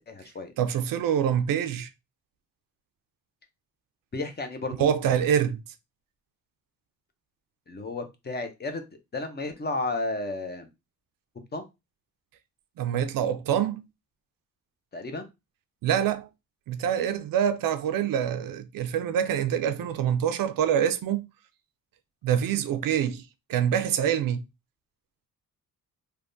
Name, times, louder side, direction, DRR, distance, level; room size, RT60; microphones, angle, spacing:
voice 1, 0.1-0.5 4.1-4.7 7.7-8.8 9.1-10.7 11.5-11.6 14.9-15.2, left 2 dB, 30° left, 0.6 m, -32 dB
voice 2, 0.6-1.9 4.8-5.6 12.8-13.8 15.8-16.3 16.7-21.2 22.2-23.2 23.5-24.4, right 9 dB, 75° right, 0.5 m, -25 dB
3.3 x 2.2 x 2.5 m
cardioid pair, 105°, 34 cm